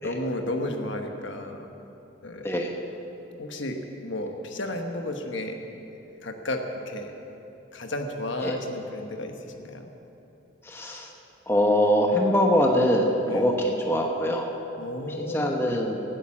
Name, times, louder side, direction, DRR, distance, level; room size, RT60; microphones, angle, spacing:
voice 1, 0.0-1.6 2.2-2.5 3.4-5.6 6.2-7.1 7.7-9.9 13.2-13.5 14.8-15.8, left 1 dB, 70° left, 4 dB, 1.2 m, -33 dB
voice 2, 10.6-11.1 11.5-14.5 15.2-16.0, equal, 10° left, 1 dB, 1.0 m, -23 dB
17.0 x 9.1 x 7.5 m, 3.0 s
head